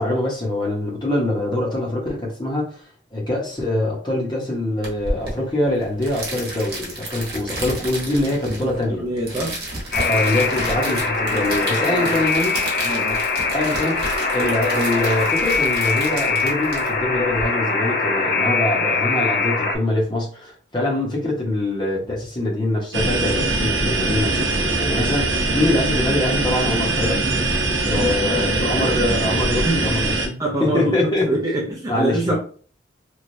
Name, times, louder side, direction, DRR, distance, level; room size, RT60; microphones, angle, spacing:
voice 1, 0.0-9.0 10.0-12.6 13.5-30.3 30.6-31.3 31.9-32.3, left 1 dB, 25° left, -2 dB, 0.9 m, -24 dB
sound 1, 4.8-17.4, right 1 dB, 55° right, 1.1 m, -32 dB
voice 2, 9.0-9.6 11.9-12.2 12.8-13.2 18.4-18.6 27.9-28.9 29.6-29.9 30.4-31.0 31.3-32.3, right 1 dB, 20° right, -2 dB, 0.5 m, -26 dB
Alarm, 9.9-19.8, left 4 dB, 50° left, 0.5 m, -22 dB
sound 2, 22.9-30.3, right 2 dB, 75° right, 0.7 m, -22 dB
3.1 x 2.4 x 2.6 m, 0.43 s
head